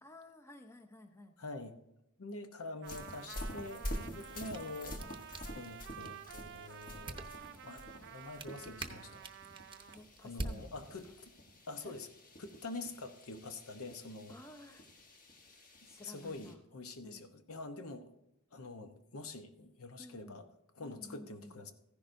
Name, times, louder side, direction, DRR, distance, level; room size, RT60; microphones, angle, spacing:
voice 1, 0.0-1.4 4.0-4.3 9.9-10.8 11.8-11.9 14.3-14.9 15.9-16.6 17.0-17.3 20.0-20.5 20.8-21.6, left 1 dB, 10° left, 6 dB, 0.6 m, -54 dB
voice 2, 1.4-1.8 2.2-3.9 4.1-5.0 5.5-7.2 7.6-9.3 10.2-11.3 11.7-12.1 12.4-14.4 16.0-18.1 18.5-20.5 20.8-21.7, left 2 dB, 70° left, 8 dB, 0.9 m, -46 dB
sound 1, 2.8-16.5, equal, 40° left, 1.2 m, -48 dB
Trumpet, 2.8-10.0, right 9 dB, 50° right, 0.3 m, -51 dB
sound 2, 4.2-11.3, right 2 dB, 20° right, 0.8 m, -48 dB
15.0 x 10.5 x 2.6 m, 0.91 s
head